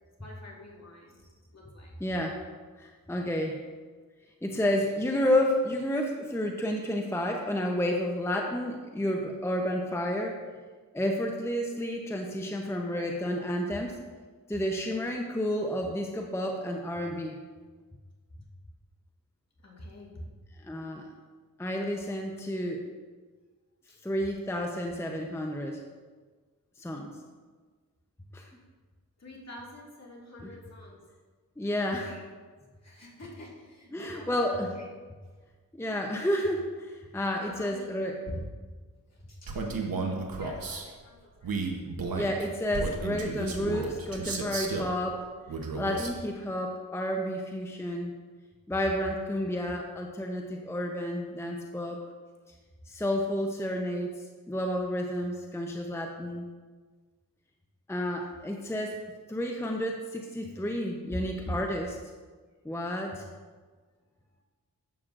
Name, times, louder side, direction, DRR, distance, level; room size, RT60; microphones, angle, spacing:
voice 1, 0.2-2.0 3.5-3.6 12.8-13.1 19.6-20.3 23.9-24.0 29.2-31.0 31.9-32.5 32.8-34.9 37.4-37.9 38.3-38.4 39.1-39.7 40.3-41.6 61.1-61.4, left 1 dB, 50° left, -3 dB, 2.1 m, -46 dB
voice 2, 2.0-2.4 2.8-3.6 4.4-10.4 10.9-14.0 14.5-17.4 20.7-21.1 21.6-22.8 24.0-25.8 26.8-27.1 28.3-28.5 30.4-30.5 31.6-32.2 33.9-34.7 35.7-38.2 42.1-45.3 45.8-48.1 48.7-52.0 52.9-56.5 57.9-59.0 59.3-61.9 62.6-63.2, left 1 dB, 5° left, 1 dB, 0.7 m, -31 dB
Male speech man speaking, 39.5-40.8 41.4-44.9 45.5-46.2, right 4 dB, 80° right, 1.0 m, -33 dB
11.0 x 7.6 x 2.5 m, 1.4 s
cardioid pair, 60°, 35 cm